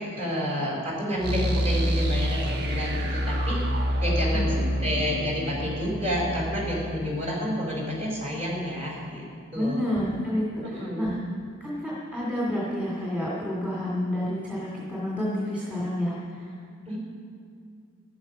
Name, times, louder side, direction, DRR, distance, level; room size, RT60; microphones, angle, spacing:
voice 1, 0.0-3.6 4.0-9.3 9.5-9.8 10.6-11.2 16.9-17.0, equal, 30° right, -3 dB, 4.3 m, -29 dB
sound 1, 1.2-8.0, equal, 55° right, 1.3 m, -28 dB
voice 2, 4.3-4.6 9.5-11.2 11.6-16.4, equal, 5° right, -6 dB, 2.4 m, -29 dB
13.0 x 12.5 x 5.5 m, 2.3 s
head